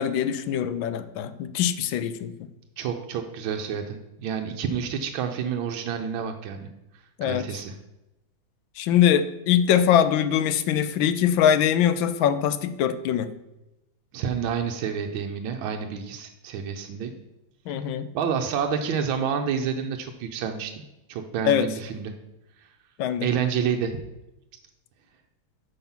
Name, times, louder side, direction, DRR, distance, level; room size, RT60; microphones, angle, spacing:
voice 1, 0.0-2.3 7.2-7.4 8.8-13.3 17.7-18.1 21.4-21.7 23.0-23.3, left 9 dB, 80° left, 12 dB, 1.3 m, -22 dB
voice 2, 2.8-6.7 6.9-7.7 14.1-17.1 17.7-17.8 18.1-20.8 21.1-22.1 22.6-22.7 23.2-24.0, right 7 dB, 80° right, 5 dB, 1.5 m, -29 dB
7.2 x 5.8 x 5.5 m, 0.94 s
omnidirectional pair, 2.2 m